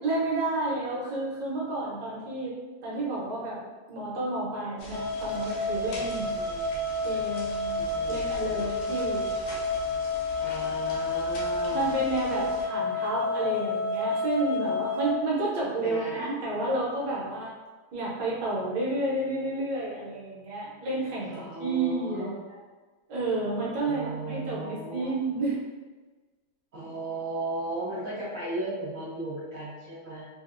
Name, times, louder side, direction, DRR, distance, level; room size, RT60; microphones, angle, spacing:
voice 1, 0.0-2.5 2.8-3.6 3.9-6.3 7.0-7.8 8.1-9.3 11.7-17.5 17.9-22.6 23.1-25.5, right 2 dB, 65° right, -6 dB, 1.2 m, -30 dB
sound 1, 4.8-12.6, equal, 85° left, 0.8 m, -43 dB
sound 2, 4.9-15.2, left 3 dB, 70° left, 1.3 m, -30 dB
voice 2, 6.3-6.7 7.7-8.7 10.4-11.9 15.8-16.3 21.3-22.4 23.9-25.1 26.7-30.2, right 2 dB, 85° right, -10 dB, 0.7 m, -36 dB
3.4 x 2.5 x 2.4 m, 1.3 s
omnidirectional pair, 2.4 m